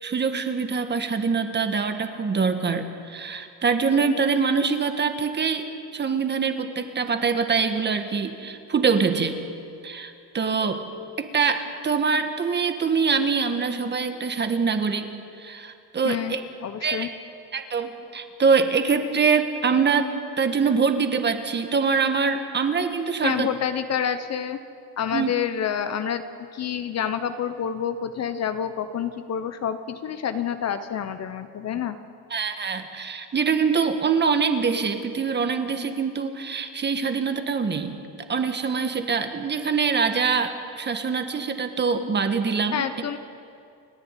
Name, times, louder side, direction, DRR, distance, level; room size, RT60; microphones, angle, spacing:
voice 1, 0.0-5.7 5.9-9.4 9.8-10.8 11.2-15.1 15.4-16.4 16.8-17.1 17.5-20.1 20.4-23.5 25.1-25.3 32.3-38.0 38.3-42.9, right 5 dB, 25° right, 7 dB, 1.6 m, -24 dB
voice 2, 16.0-16.4 16.6-17.1 23.2-24.6 25.0-26.2 26.5-32.0 42.7-43.2, left 8 dB, 35° left, 10 dB, 1.0 m, -28 dB
30.0 x 10.5 x 9.2 m, 2.5 s
cardioid pair, 120°, 44 cm